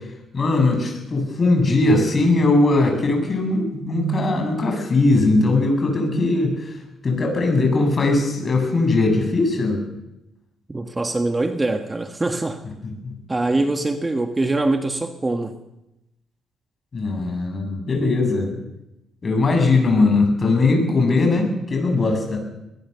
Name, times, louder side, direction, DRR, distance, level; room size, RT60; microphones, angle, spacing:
voice 1, 0.3-6.7 7.0-9.8 13.0-13.1 16.9-18.5 19.2-22.4, left 2 dB, 35° left, 3 dB, 7.5 m, -19 dB
voice 2, 10.7-12.6 13.3-15.5, right 2 dB, 20° right, 6 dB, 1.5 m, -23 dB
22.0 x 20.0 x 6.9 m, 0.90 s
cardioid pair, 90°, 0 cm